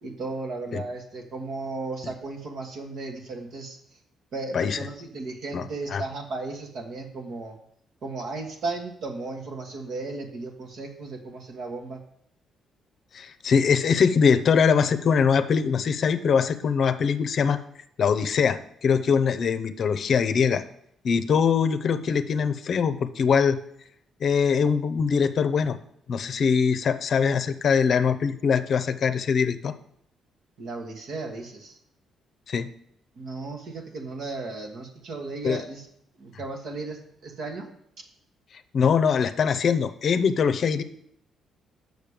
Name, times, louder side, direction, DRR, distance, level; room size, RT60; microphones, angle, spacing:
voice 1, 0.0-3.8 4.3-7.5 8.0-12.0 30.6-31.8 33.2-35.8 36.2-37.7, right 3 dB, 70° right, 3 dB, 1.5 m, -35 dB
voice 2, 5.5-6.0 13.1-17.6 18.0-20.6 21.0-23.6 24.2-25.8 26.1-29.7 32.5-32.7 35.4-35.6 38.7-40.8, left 6 dB, 55° left, 10 dB, 0.6 m, -22 dB
6.8 x 6.4 x 5.1 m, 0.71 s
cardioid pair, 90°, 0 cm